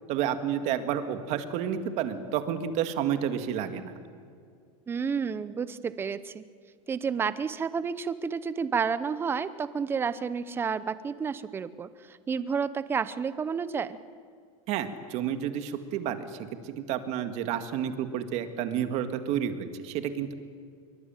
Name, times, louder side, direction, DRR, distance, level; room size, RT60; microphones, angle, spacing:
voice 1, 0.1-3.9 14.7-20.3, right 9 dB, 40° right, 9 dB, 2.0 m, -30 dB
voice 2, 4.9-6.4 6.9-14.0, right 6 dB, 15° right, 15 dB, 0.7 m, -30 dB
25.5 x 23.5 x 9.0 m, 2.2 s
supercardioid pair, 160°, 17 cm